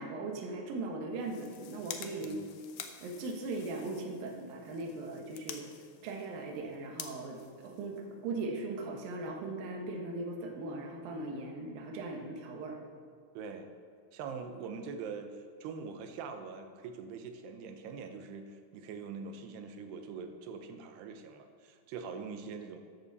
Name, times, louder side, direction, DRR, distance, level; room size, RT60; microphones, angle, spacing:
voice 1, 0.0-2.4 3.0-5.7 6.0-12.8, right 2 dB, 70° right, 2 dB, 2.9 m, -39 dB
sound 1, 1.1-8.4, left 8 dB, 80° left, 1.7 m, -49 dB
voice 2, 13.3-13.8 14.1-22.8, right 5 dB, 90° right, 7 dB, 3.0 m, -43 dB
13.5 x 11.0 x 4.1 m, 2.1 s
omnidirectional pair, 4.6 m